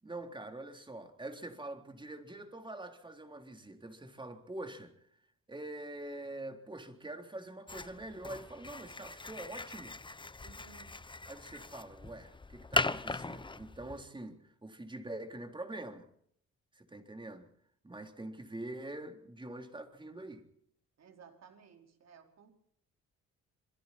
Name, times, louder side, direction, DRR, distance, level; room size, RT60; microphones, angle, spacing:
voice 1, 0.0-4.9 5.5-10.0 11.3-16.1 16.7-17.5 17.8-20.4, right 2 dB, 15° right, 3.6 m, -45 dB
sound 1, 7.7-14.0, left 3 dB, 15° left, 1.0 m, -39 dB
voice 2, 10.4-11.0 21.0-22.5, right 6 dB, 60° right, 4.7 m, -57 dB
27.5 x 22.0 x 4.4 m
cardioid pair, 90°, 30 cm